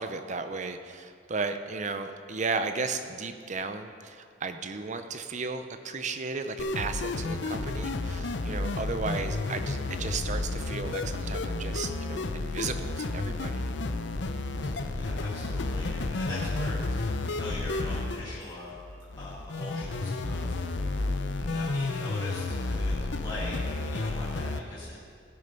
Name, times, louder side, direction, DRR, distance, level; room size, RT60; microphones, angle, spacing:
voice 1, 0.0-13.7, right 4 dB, 40° right, 8 dB, 0.6 m, -34 dB
sound 1, 6.6-24.6, left 2 dB, 65° left, 0.6 m, -31 dB
voice 2, 14.6-18.8 19.2-20.6 21.4-25.1, left 1 dB, 25° left, -9 dB, 1.9 m, -42 dB
16.5 x 6.7 x 5.3 m, 2.2 s
head